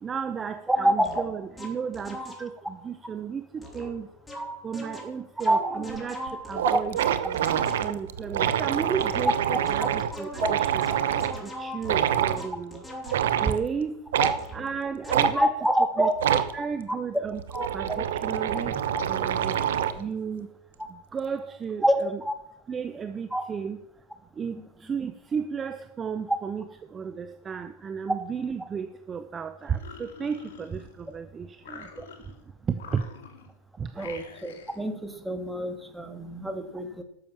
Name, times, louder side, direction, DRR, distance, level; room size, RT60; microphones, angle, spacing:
voice 1, 0.0-4.1 4.6-7.0 7.3-7.5 7.8-10.9 11.4-12.8 13.4-14.0 14.5-15.5 16.0-17.4 17.7-19.6 20.0-20.5 21.1-22.2 22.7-23.8 24.4-26.7 26.9-31.9 32.7-33.0 33.8-34.0, right 6 dB, 20° right, 10 dB, 0.7 m, -33 dB
sound 1, 0.7-2.7 3.6-8.1 9.0-13.5 14.4-14.7 15.0-15.3, left 1 dB, 10° left, 3.1 m, -41 dB
voice 2, 0.7-1.2 4.3-4.6 5.4-5.8 6.6-6.8 8.4-8.5 9.8-9.9 10.4-10.5 14.2-14.4 15.3-16.1 16.6-17.0 17.5-18.0 18.9-19.0 20.8-20.9 21.8-22.3 23.3-23.4 24.5-24.6 26.3-26.4 28.1-28.2 32.0-32.1 34.0-37.0, right 1 dB, 5° right, 7 dB, 1.6 m, -26 dB
sound 2, 5.9-6.0 6.3-6.4 6.6-11.4 11.8-12.4 13.1-13.6 14.1-14.4 15.1-15.3 16.2-16.5 17.3-20.0, right 10 dB, 80° right, 0.9 m, -26 dB
sound 3, 29.6-31.1 31.6-32.4 32.7-33.6 33.9-34.9, left 6 dB, 75° left, 2.2 m, -46 dB
10.5 x 6.8 x 7.2 m, 0.84 s
hypercardioid pair, 115°, 0 cm